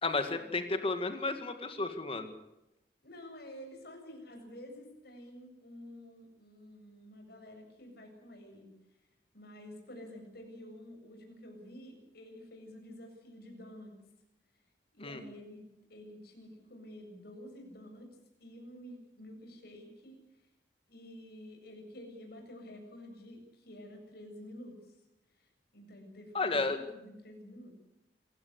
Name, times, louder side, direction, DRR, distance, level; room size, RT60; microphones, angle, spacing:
voice 1, 0.0-2.3 15.0-15.2 26.3-26.8, left 3 dB, 30° left, 8 dB, 2.1 m, -32 dB
voice 2, 3.0-8.7 9.3-14.0 14.9-15.6 15.9-18.1 18.4-20.2 20.9-24.8 25.7-27.8, left 1 dB, 60° left, 3 dB, 7.6 m, -50 dB
26.5 x 16.5 x 8.3 m, 0.91 s
head